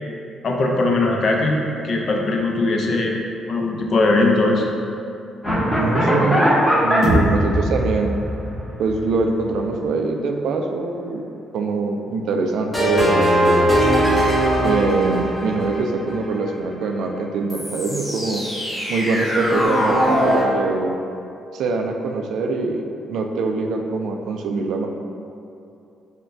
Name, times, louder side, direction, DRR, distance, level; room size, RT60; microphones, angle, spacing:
voice 1, 0.4-1.6 1.8-4.6, left 2 dB, 55° left, 0 dB, 0.5 m, -20 dB
sound 1, 5.4-9.5 12.7-16.5 17.5-20.4, equal, 15° left, 1.1 m, -20 dB
voice 2, 5.7-6.5 6.8-8.2 8.8-11.2 11.5-13.6 14.6-18.4 18.9-20.9 21.5-24.9, right 3 dB, 80° right, 3 dB, 0.3 m, -23 dB
5.7 x 2.2 x 2.6 m, 2.7 s
cardioid pair, 90°, 0 cm